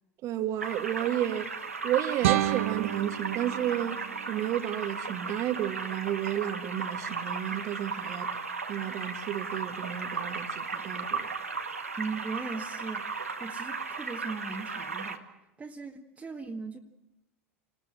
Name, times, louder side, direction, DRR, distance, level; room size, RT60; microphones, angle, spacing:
voice 1, 0.2-1.5 1.8-8.3 8.7-11.3, right 11 dB, 45° right, 1.7 m, -32 dB
sound 1, 0.6-15.2, right 4 dB, 85° right, 1.7 m, -36 dB
sound 2, 2.2-5.2, right 13 dB, 65° right, 1.1 m, -31 dB
voice 2, 12.0-15.3 15.6-16.8, right 4 dB, 20° right, 1.9 m, -38 dB
28.5 x 20.0 x 7.6 m
figure-of-eight pair, 80°, 7 cm